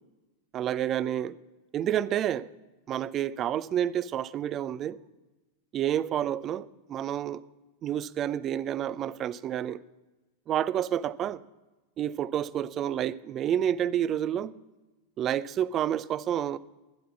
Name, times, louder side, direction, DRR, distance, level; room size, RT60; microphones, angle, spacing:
voice 1, 0.5-1.4 1.7-2.5 2.9-5.0 5.7-7.4 7.8-9.8 10.5-11.4 12.0-14.6 15.2-16.6, right 10 dB, 30° right, 0.4 m, -29 dB
12.0 x 10.5 x 7.2 m
figure-of-eight pair, 90°, 0 cm